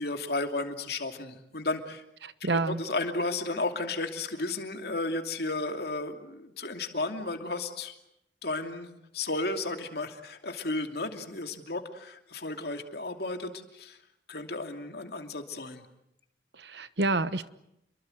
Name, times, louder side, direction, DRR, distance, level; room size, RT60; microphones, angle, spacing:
voice 1, 0.0-2.0 2.8-7.9 8.4-14.0 14.3-15.8, left 2 dB, 60° left, 5 dB, 2.7 m, -33 dB
voice 2, 2.2-2.8 16.5-17.5, right 3 dB, 70° right, 14 dB, 1.1 m, -29 dB
29.0 x 23.0 x 8.0 m, 0.81 s
head